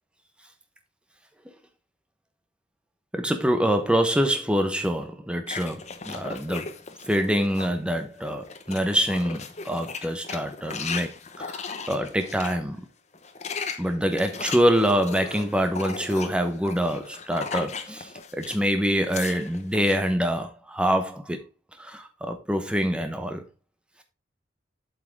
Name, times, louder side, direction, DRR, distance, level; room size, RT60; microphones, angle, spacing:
voice 1, 3.1-6.8 7.1-11.6 11.9-12.8 13.8-21.4 21.8-23.4, equal, 5° right, 0.9 m, -25 dB
sound 1, 5.5-7.8 8.2-12.6 13.1-18.7 18.9-20.0, left 5 dB, 35° left, 0.8 m, -37 dB
7.9 x 5.6 x 3.6 m
head